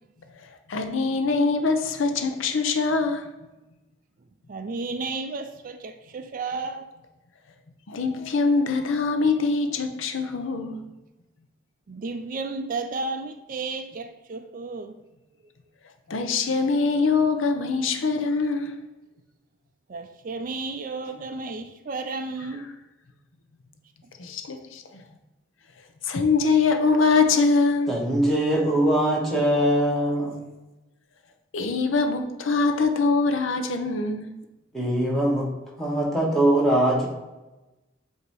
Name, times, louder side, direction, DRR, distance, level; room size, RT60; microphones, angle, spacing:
voice 1, 0.7-3.3 7.9-10.8 16.1-18.7 24.2-25.0 26.0-27.9 31.5-34.3, left 4 dB, 75° left, 6 dB, 0.6 m, -23 dB
voice 2, 4.5-6.9 11.9-14.9 19.9-22.7, right 3 dB, 40° right, 8 dB, 0.4 m, -33 dB
voice 3, 27.9-30.4 34.7-35.5 35.8-37.1, right 1 dB, ahead, -5 dB, 1.4 m, -22 dB
8.0 x 2.8 x 4.7 m, 1.0 s
head